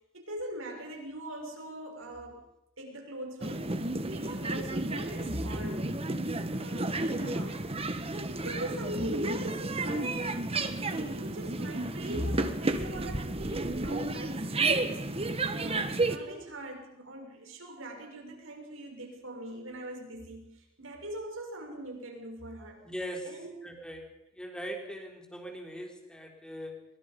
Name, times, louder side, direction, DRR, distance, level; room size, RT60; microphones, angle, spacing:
voice 1, 0.1-2.4 2.8-3.8 4.1-5.8 6.6-7.9 8.1-10.3 10.8-22.8 23.2-23.6 24.8-24.9, right 1 dB, 80° right, 2 dB, 6.7 m, -41 dB
sound 1, 3.4-16.2, right 2 dB, 30° right, 1.6 m, -32 dB
voice 2, 22.8-24.1 24.3-26.9, equal, 5° left, 2 dB, 4.0 m, -40 dB
24.0 x 23.5 x 5.5 m, 0.81 s
head